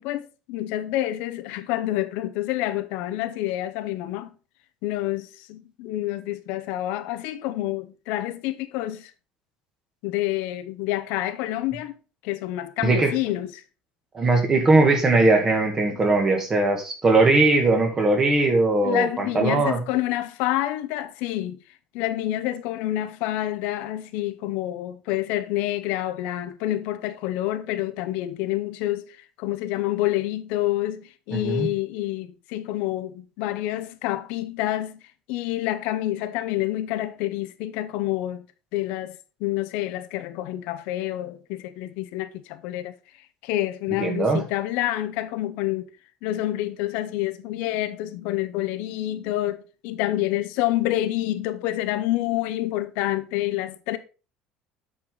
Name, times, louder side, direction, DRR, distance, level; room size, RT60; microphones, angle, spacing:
voice 1, 0.0-4.3 4.8-9.1 10.0-12.0 12.2-13.6 18.8-21.6 21.9-35.0 35.3-38.4 38.7-42.9 43.4-45.9 46.2-54.0, left 14 dB, 80° left, 0.7 m, -28 dB
voice 2, 12.8-13.1 14.1-19.8 31.3-31.7 44.0-44.4, right 3 dB, 25° right, 1.9 m, -20 dB
8.6 x 4.8 x 3.9 m
cardioid pair, 130°, 2 cm